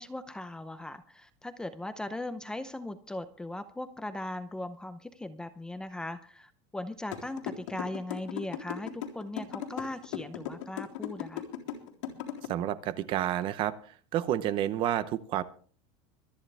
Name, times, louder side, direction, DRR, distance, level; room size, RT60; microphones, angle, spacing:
voice 1, 0.0-11.4, left 1 dB, 5° left, 10 dB, 0.6 m, -39 dB
sound 1, 7.1-12.5, left 12 dB, 90° left, 3.6 m, -36 dB
voice 2, 12.5-13.7 14.1-15.4, right 12 dB, 35° right, 15 dB, 0.9 m, -29 dB
25.0 x 10.0 x 3.4 m, 0.43 s
supercardioid pair, 170°, 15 cm